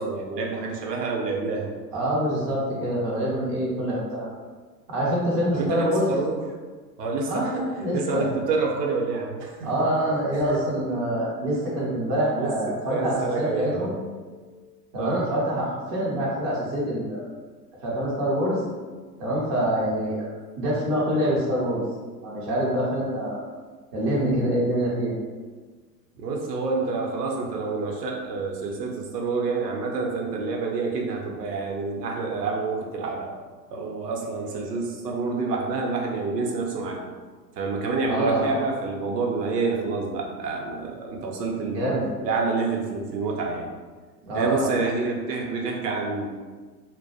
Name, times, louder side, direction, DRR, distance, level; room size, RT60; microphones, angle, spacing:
voice 1, 0.0-1.7 5.5-6.4 7.0-9.7 10.5-10.6 12.4-14.0 14.2-14.7 15.0-15.2 20.0-20.1 26.2-33.3 33.7-37.0 37.6-41.9 42.2-43.7 44.3-46.3, right 4 dB, 70° right, 0 dB, 0.7 m, -28 dB
voice 2, 1.9-4.3 4.9-6.1 7.3-8.3 9.6-14.0 14.9-17.3 17.8-18.6 19.2-20.3 20.6-21.8 22.2-23.4 23.9-25.1 38.0-38.7 41.6-42.1 44.2-44.7, right 1 dB, 20° right, -6 dB, 0.3 m, -25 dB
2.3 x 2.0 x 2.6 m, 1.4 s
figure-of-eight pair, 95°, 50 cm